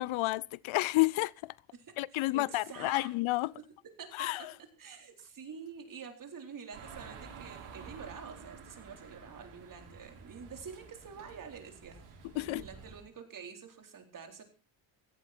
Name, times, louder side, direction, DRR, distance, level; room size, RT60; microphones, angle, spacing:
voice 1, 0.0-1.5 2.0-3.5 4.1-4.5 12.4-12.6, left 20 dB, 70° left, 0.6 m, -30 dB
voice 2, 2.1-3.1 3.8-4.3 4.8-14.4, right 6 dB, 40° right, 4.1 m, -47 dB
sound 1, 6.7-13.0, right 5 dB, 80° right, 6.8 m, -50 dB
17.5 x 15.0 x 4.4 m
cardioid pair, 130°, 49 cm